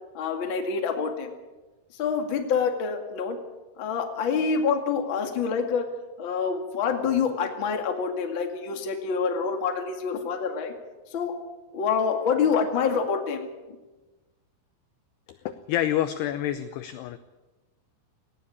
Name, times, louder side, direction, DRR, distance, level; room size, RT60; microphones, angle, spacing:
voice 1, 0.1-1.3 1.9-3.4 3.8-5.8 6.2-10.7 11.1-11.4 11.7-13.5, left 6 dB, 40° left, 4 dB, 1.7 m, -26 dB
voice 2, 15.3-17.2, left 12 dB, 80° left, 11 dB, 2.3 m, -28 dB
18.5 x 17.0 x 8.6 m, 1.2 s
omnidirectional pair, 5.7 m